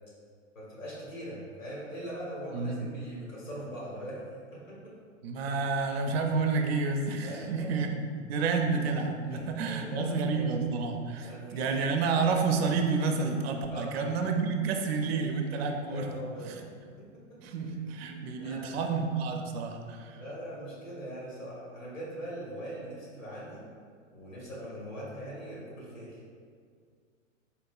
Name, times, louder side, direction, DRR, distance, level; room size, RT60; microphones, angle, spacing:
voice 1, 0.5-4.2 4.5-5.0 7.2-7.7 9.3-10.5 11.2-12.0 13.7-13.9 15.5-16.6 17.0-17.8 18.3-18.9 20.1-23.6 24.1-26.2, equal, 85° left, -6 dB, 1.4 m, -41 dB
voice 2, 2.5-2.9 5.2-8.0 8.3-16.1 17.4-20.2, right 4 dB, 55° right, 4 dB, 0.4 m, -29 dB
3.5 x 2.8 x 2.3 m, 2.1 s
hypercardioid pair, 105°, 38 cm